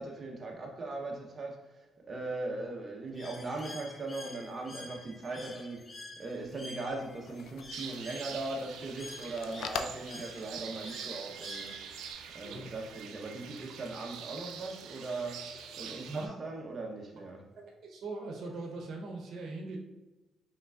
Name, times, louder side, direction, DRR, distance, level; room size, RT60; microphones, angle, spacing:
voice 1, 0.0-11.8 12.3-17.5, right 2 dB, 35° right, 0.8 m, -39 dB
Bird, 3.2-12.1, left 2 dB, 30° left, 0.6 m, -49 dB
sound 1, 7.0-13.0, left 6 dB, 85° left, 0.3 m, -45 dB
sound 2, 7.7-16.3, right 7 dB, 85° right, 0.4 m, -45 dB
voice 2, 17.6-19.8, right 3 dB, 70° right, 0.8 m, -41 dB
5.4 x 3.2 x 2.4 m
cardioid pair, 90°, 0 cm